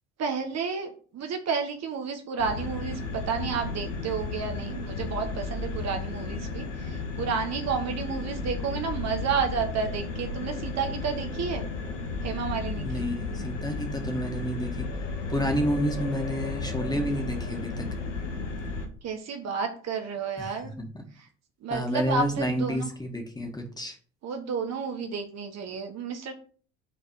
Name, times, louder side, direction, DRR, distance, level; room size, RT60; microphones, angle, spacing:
voice 1, 0.2-11.7 12.2-13.1 19.0-20.7 21.2-21.3 21.6-22.9 24.2-26.3, right 5 dB, 45° right, 5 dB, 1.3 m, -31 dB
sound 1, 2.4-18.9, left 3 dB, 85° left, 1.2 m, -33 dB
voice 2, 12.8-14.9 15.3-17.9 20.4-20.9 21.7-24.0, equal, 10° left, 3 dB, 2.0 m, -30 dB
5.7 x 4.0 x 5.7 m, 0.41 s
figure-of-eight pair, 60°, 36 cm